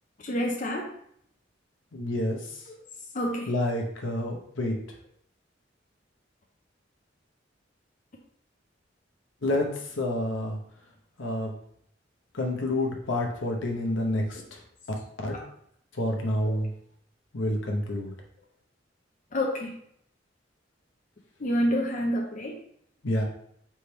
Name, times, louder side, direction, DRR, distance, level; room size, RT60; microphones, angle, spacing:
voice 1, 0.2-0.9 2.7-2.8 3.1-3.5 16.4-16.6 19.3-19.7 21.4-22.6, equal, 40° left, 0 dB, 0.6 m, -28 dB
voice 2, 1.9-2.7 3.5-4.8 9.4-10.6 11.2-11.5 12.3-14.6 15.2-15.3 15.9-16.7 17.3-18.1 23.0-23.2, left 1 dB, 80° left, 1 dB, 0.9 m, -28 dB
3.4 x 3.3 x 4.3 m, 0.69 s
head